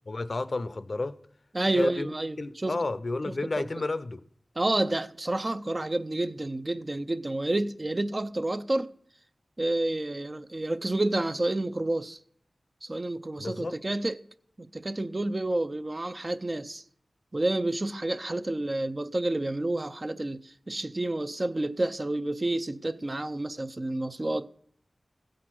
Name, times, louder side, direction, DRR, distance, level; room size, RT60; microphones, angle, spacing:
voice 1, 0.1-1.1 1.7-4.2 13.4-13.8, left 2 dB, 55° left, 0.6 m, -31 dB
voice 2, 1.5-2.8 3.3-3.7 4.6-8.9 9.6-12.2 12.8-14.2 14.6-16.8 17.3-24.5, right 2 dB, 35° right, 0.5 m, -29 dB
16.0 x 6.3 x 6.0 m
wide cardioid pair, 60°, 0 cm